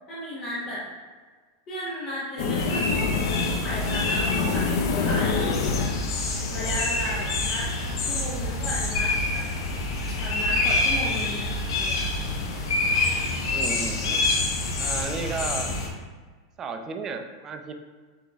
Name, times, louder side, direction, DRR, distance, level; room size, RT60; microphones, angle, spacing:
voice 1, 0.1-0.8 1.7-3.0 3.4-5.5 6.5-9.4 10.2-11.4 11.7-12.0, equal, 25° left, -8 dB, 0.8 m, -34 dB
sound 1, 2.4-7.0, left 5 dB, 55° left, 0.5 m, -27 dB
sound 2, 2.6-15.9, left 2 dB, 80° left, 0.8 m, -27 dB
voice 2, 13.5-14.3 14.8-15.7 16.6-17.7, right 5 dB, 20° right, 6 dB, 0.3 m, -33 dB
7.7 x 3.0 x 2.3 m, 1.4 s
supercardioid pair, 170°, 2 cm